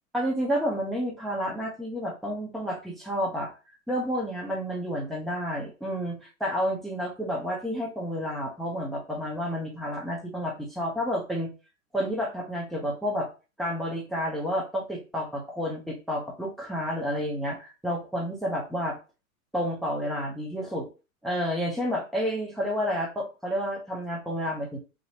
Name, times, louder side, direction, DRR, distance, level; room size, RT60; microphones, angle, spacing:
voice 1, 0.1-3.5 3.9-11.5 11.9-13.3 13.6-19.0 19.5-20.9 21.2-24.8, equal, ahead, -2 dB, 0.9 m, -30 dB
4.1 x 2.3 x 4.0 m, 0.32 s
figure-of-eight pair, 100°, 43 cm